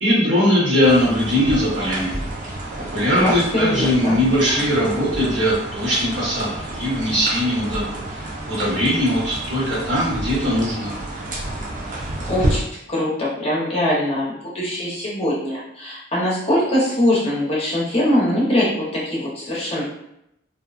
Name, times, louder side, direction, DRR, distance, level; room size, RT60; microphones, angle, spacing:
voice 1, 0.0-2.1 2.9-7.8 8.1-10.9, equal, 65° right, -8 dB, 1.3 m, -20 dB
sound 1, 0.8-12.6, right 1 dB, 40° right, 0.5 m, -30 dB
voice 2, 3.1-4.2 12.3-12.6 12.9-18.7 19.1-19.8, left 1 dB, 30° left, -7 dB, 0.7 m, -22 dB
2.6 x 2.1 x 2.4 m, 0.80 s
head